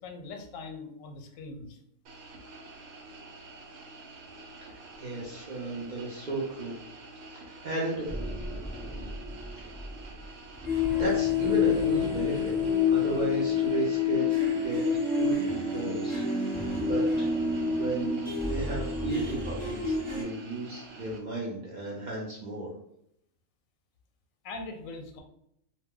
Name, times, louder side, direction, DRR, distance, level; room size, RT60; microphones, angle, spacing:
voice 1, 0.0-1.8 24.4-25.2, left 3 dB, 85° left, 5 dB, 1.0 m, -41 dB
sound 1, 2.1-21.2, right 2 dB, 80° right, 1.0 m, -48 dB
voice 2, 4.6-6.8 7.3-8.1 10.9-12.5 12.9-16.2 16.6-17.3 17.8-22.7, right 2 dB, 50° right, -4 dB, 0.5 m, -34 dB
sound 2, 8.1-10.0 10.6-20.2, left 5 dB, 10° right, 0.9 m, -28 dB
2.2 x 2.1 x 3.6 m, 0.74 s
omnidirectional pair, 1.4 m